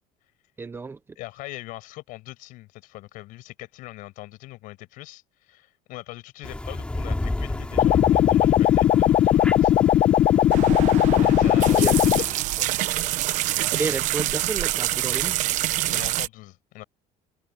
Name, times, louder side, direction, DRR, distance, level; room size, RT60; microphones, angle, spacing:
voice 1, 0.6-1.0 10.9-11.2 11.6-11.9 13.7-15.4, right 4 dB, 15° right, 1.0 m, -31 dB
voice 2, 1.2-9.7 11.2-12.7 15.9-16.8, left 18 dB, 65° left, 6.0 m, -41 dB
sound 1, 6.4-12.4, left 2 dB, 5° left, 4.9 m, -33 dB
sound 2, 7.8-12.2, left 11 dB, 40° left, 1.0 m, -18 dB
sound 3, 10.5-16.3, right 15 dB, 55° right, 1.0 m, -26 dB
cardioid pair, 165°, 15 cm